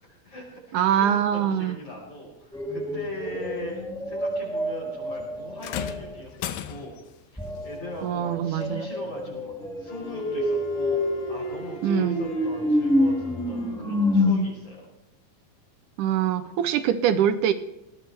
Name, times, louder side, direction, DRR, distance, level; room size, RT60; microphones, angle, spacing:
voice 1, 0.0-3.8 4.1-6.3 6.7-6.9 7.3-14.8, left 1 dB, 40° left, -5 dB, 5.8 m, -40 dB
voice 2, 0.7-1.8 8.0-8.9 11.8-12.2 16.0-17.5, right 9 dB, 75° right, 11 dB, 2.0 m, -23 dB
sound 1, 2.5-6.2 7.4-14.3, left 1 dB, ahead, 1.0 m, -28 dB
sound 2, 5.6-7.1 8.6-8.8 9.6-9.7, left 11 dB, 80° left, 2.6 m, -35 dB
Wind instrument woodwind instrument, 9.9-14.0, left 2 dB, 60° left, 4.1 m, -41 dB
20.5 x 17.5 x 3.4 m, 0.89 s
omnidirectional pair, 4.1 m